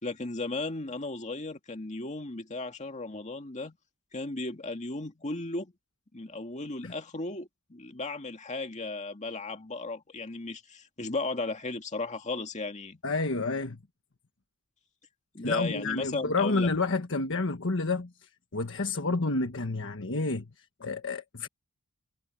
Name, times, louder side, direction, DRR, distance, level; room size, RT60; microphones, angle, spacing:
voice 1, 0.0-3.8 4.1-5.7 6.1-13.0 15.3-16.7, left 3 dB, 35° left, 2.1 m, -35 dB
voice 2, 13.0-13.8 15.4-21.5, left 3 dB, 60° left, 1.4 m, -30 dB
head